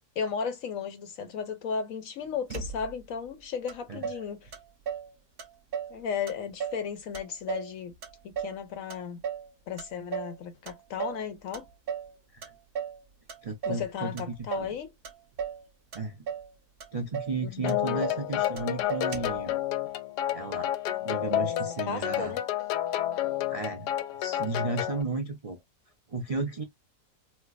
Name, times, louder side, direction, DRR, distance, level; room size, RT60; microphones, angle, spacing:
voice 1, 0.2-4.5 5.9-7.9 8.2-9.2 9.7-11.7 13.7-14.9 17.4-17.8 21.9-22.4, left 7 dB, 70° left, 0.8 m, -35 dB
Motor vehicle (road), 2.5-3.2 3.7-3.8 4.0-5.1 5.4-6.0 6.3-6.9 7.1-8.6 8.9-9.5 9.8-10.4 10.7-11.2 11.5-12.1 12.4-13.0 13.3-13.9 14.2-14.8 15.0-15.6 15.9-16.5 16.8-16.9 17.1-17.4 17.7-18.3 18.6-18.7 18.9-19.4, right 7 dB, 50° right, 0.7 m, -36 dB
voice 2, 13.4-14.8 15.9-16.3 16.9-19.6 20.3-20.7 21.0-22.3 23.5-23.9 24.2-25.6 26.1-26.6, right 3 dB, 70° right, 0.3 m, -34 dB
sound 1, 17.6-25.0, left 13 dB, 85° left, 1.2 m, -30 dB
4.4 x 2.2 x 2.4 m
omnidirectional pair, 1.8 m